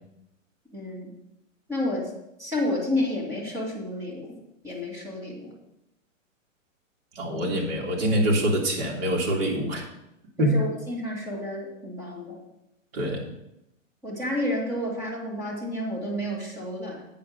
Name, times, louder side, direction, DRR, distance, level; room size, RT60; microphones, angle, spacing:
voice 1, 0.7-1.2 1.7-2.1 2.4-4.4 4.6-5.5 10.4-12.4 14.0-17.1, left 1 dB, 5° right, -4 dB, 2.0 m, -30 dB
voice 2, 7.2-9.8 10.4-10.5 12.9-13.3, right 1 dB, 50° right, -1 dB, 2.3 m, -25 dB
8.6 x 5.1 x 6.3 m, 0.85 s
hypercardioid pair, 155°, 39 cm